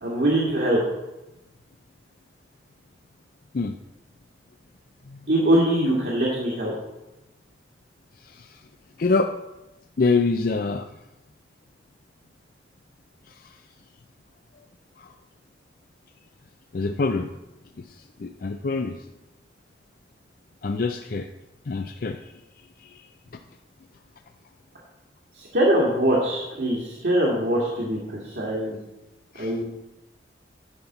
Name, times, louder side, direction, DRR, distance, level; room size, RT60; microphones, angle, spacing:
voice 1, 0.0-0.8 5.3-6.7 25.3-28.8 29.4-29.6, right 1 dB, 65° right, -5 dB, 2.0 m, -22 dB
voice 2, 8.2-8.6 9.0-9.3 10.0-10.9 13.3-13.6 15.0-15.1 16.7-17.3 17.8-19.0 20.6-21.3 21.7-22.3 22.8-23.1 29.3-29.6, left 3 dB, 50° left, 7 dB, 0.4 m, -26 dB
10.5 x 4.3 x 7.8 m, 0.97 s
head